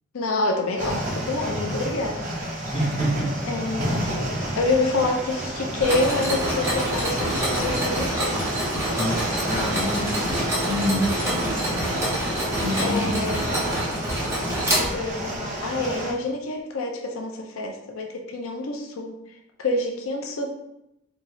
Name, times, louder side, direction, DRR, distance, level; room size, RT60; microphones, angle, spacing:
voice 1, 0.1-2.2 2.5-2.7 3.5-8.4 9.2-9.4 11.3-11.6 12.8-13.5 14.7-19.1 19.6-20.5, left 2 dB, 85° left, 2 dB, 0.5 m, -27 dB
sound 1, 0.8-16.1, right 1 dB, 40° right, 0.8 m, -31 dB
voice 2, 2.7-3.4 9.0-11.9 12.6-13.2, equal, 25° left, -6 dB, 1.2 m, -27 dB
Mechanisms, 5.8-15.4, equal, 15° right, 1.0 m, -26 dB
4.4 x 2.7 x 3.0 m, 0.84 s
head